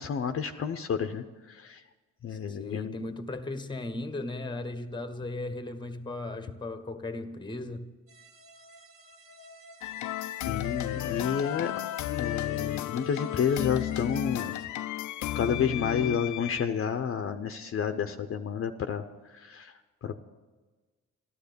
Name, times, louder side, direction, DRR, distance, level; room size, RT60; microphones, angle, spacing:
voice 1, 0.0-1.8 2.2-3.0 10.5-11.7 12.2-14.5 15.3-20.2, left 7 dB, 45° left, 0.8 m, -30 dB
voice 2, 2.5-7.9 18.1-18.3, left 2 dB, 15° left, 1.2 m, -37 dB
sound 1, 8.1-14.7, right 1 dB, 45° right, 1.7 m, -52 dB
sound 2, 9.8-16.7, left 14 dB, 75° left, 0.5 m, -33 dB
13.0 x 12.5 x 6.8 m
cardioid pair, 90°, 30 cm